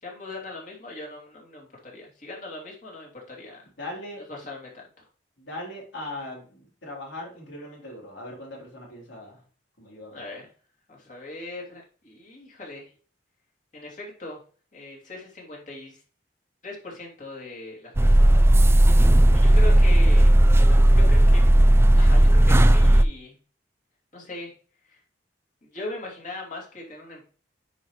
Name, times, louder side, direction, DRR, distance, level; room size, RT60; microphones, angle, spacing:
voice 1, 0.0-3.6 4.2-5.0 10.1-10.5 10.9-12.9 13.7-14.4 14.7-16.0 16.6-18.5 19.3-20.3 21.1-21.5 21.9-23.3 24.1-24.5 24.9-25.0 25.6-27.2, left 2 dB, 45° left, -2 dB, 2.9 m, -39 dB
voice 2, 3.8-4.2 5.4-9.4 9.8-10.2 18.2-18.7 19.1-19.8 20.5-21.4, left 1 dB, 85° left, -3 dB, 3.6 m, -40 dB
sound 1, 18.0-23.0, right 1 dB, 15° right, 0.3 m, -15 dB
9.8 x 5.0 x 3.2 m, 0.40 s
head